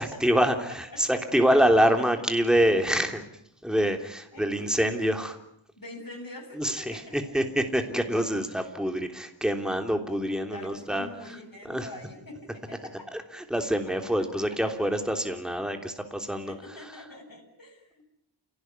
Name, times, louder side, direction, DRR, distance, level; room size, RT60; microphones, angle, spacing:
voice 1, 0.0-3.2 3.6-5.3 6.6-11.1 11.6-11.9 13.1-16.5, equal, ahead, 5 dB, 3.3 m, -26 dB
voice 2, 0.7-1.0 1.3-1.4 4.3-4.9 5.8-7.5 8.2-8.7 10.5-13.1 16.5-18.1, left 2 dB, 50° left, 1 dB, 8.0 m, -44 dB
29.0 x 18.5 x 9.6 m, 0.74 s
wide cardioid pair, 70°, 46 cm